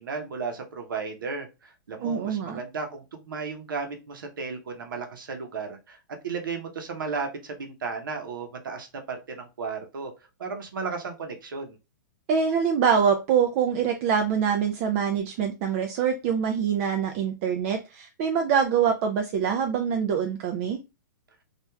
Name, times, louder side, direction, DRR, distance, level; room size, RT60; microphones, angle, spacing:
voice 1, 0.0-6.0 6.2-10.1 10.4-11.8, right 4 dB, 85° right, 0.8 m, -34 dB
voice 2, 2.0-2.6 12.3-20.8, right 7 dB, 40° right, 0.4 m, -24 dB
3.0 x 2.4 x 2.2 m
hypercardioid pair, 135°, 11 cm